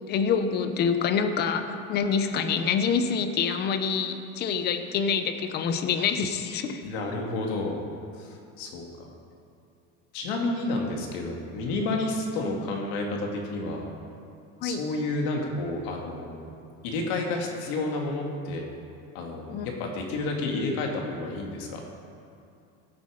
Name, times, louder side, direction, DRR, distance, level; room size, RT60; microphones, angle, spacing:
voice 1, 0.1-6.8 14.6-14.8 19.5-19.7, left 6 dB, 35° left, 8 dB, 0.7 m, -26 dB
voice 2, 6.8-7.7 8.2-9.1 10.1-13.9 14.6-16.5 16.8-18.7 19.1-21.8, left 2 dB, 90° left, 1 dB, 2.2 m, -30 dB
16.0 x 8.0 x 5.0 m, 2.6 s
cardioid pair, 160°, 31 cm